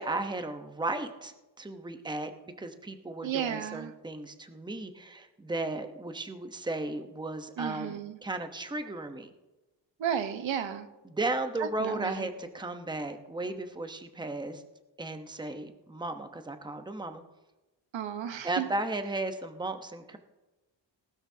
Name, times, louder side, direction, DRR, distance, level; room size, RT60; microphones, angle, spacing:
voice 1, 0.0-2.3 2.6-9.3 11.1-14.6 15.0-17.2 18.4-20.2, right 2 dB, 10° right, 7 dB, 1.0 m, -35 dB
voice 2, 3.2-3.9 7.6-8.2 10.0-10.9 11.6-12.3 17.9-18.7, right 9 dB, 85° right, 9 dB, 1.1 m, -33 dB
19.0 x 12.5 x 2.8 m, 1.1 s
cardioid pair, 95°, 45 cm